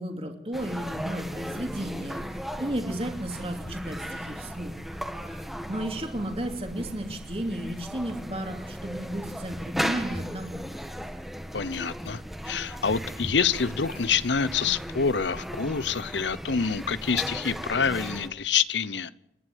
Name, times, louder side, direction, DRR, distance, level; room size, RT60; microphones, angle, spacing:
voice 1, 0.0-2.2 2.6-4.7 5.3-10.7, right 1 dB, 35° right, 2.8 m, -33 dB
sound 1, 0.5-18.3, equal, ahead, 1.6 m, -36 dB
voice 2, 11.5-12.2 12.4-19.1, left 6 dB, 85° left, 0.8 m, -27 dB
29.0 x 11.0 x 8.1 m
head